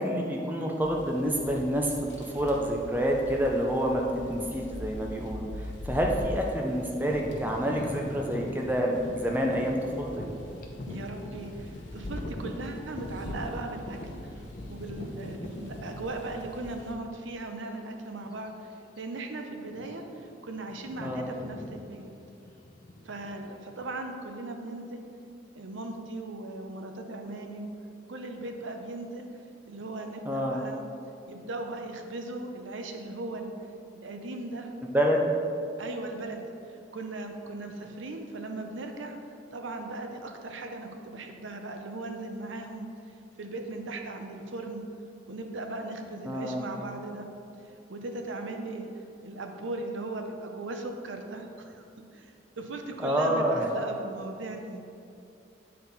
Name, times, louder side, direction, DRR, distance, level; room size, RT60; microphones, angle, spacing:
voice 1, 0.0-1.9 2.3-4.0 4.3-10.2 21.0-21.3 30.2-30.6 34.8-35.3 46.2-46.6 53.0-53.7, equal, 10° right, 0 dB, 0.5 m, -28 dB
sound 1, 0.8-16.9, left 1 dB, 70° left, 1.0 m, -43 dB
sound 2, 7.1-16.8 17.5-17.6 18.2-18.5 18.7-19.0 19.6-20.2 20.5-23.9, left 1 dB, 45° left, 0.7 m, -41 dB
voice 2, 10.9-14.3 14.7-18.5 19.0-22.1 23.0-25.0 25.5-27.7 28.1-29.3 29.7-30.8 31.3-33.6 33.9-34.7 35.8-39.2 39.5-42.9 43.4-44.8 45.3-47.3 47.9-48.9 49.2-51.8 52.1-54.8, right 2 dB, 80° right, 4 dB, 0.6 m, -38 dB
8.4 x 4.4 x 4.0 m, 2.6 s
head